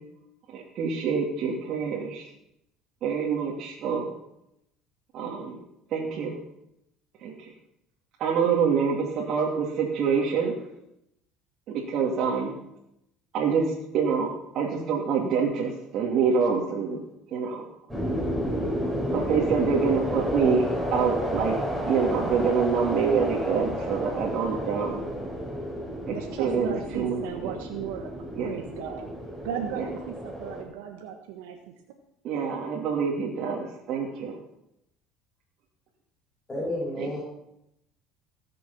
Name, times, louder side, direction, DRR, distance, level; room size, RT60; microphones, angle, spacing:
voice 1, 0.5-2.3 3.0-4.1 5.1-5.6 5.9-6.4 7.2-7.5 8.2-10.5 11.7-12.5 13.3-17.0 17.3-17.6 19.1-20.6 20.9-21.5 21.8-25.1 26.1-27.2 28.4-28.5 32.2-34.3 37.0-37.2, right 6 dB, 55° right, -2 dB, 2.5 m, -26 dB
sound 1, 17.9-30.6, equal, ahead, 7.3 m, -31 dB
voice 2, 26.1-28.1 28.4-29.1 29.4-31.7, right 8 dB, 85° right, 4 dB, 1.3 m, -36 dB
voice 3, 36.5-37.2, left 1 dB, 20° left, -6 dB, 6.4 m, -30 dB
18.0 x 6.9 x 7.1 m, 0.83 s
supercardioid pair, 100°, 0 cm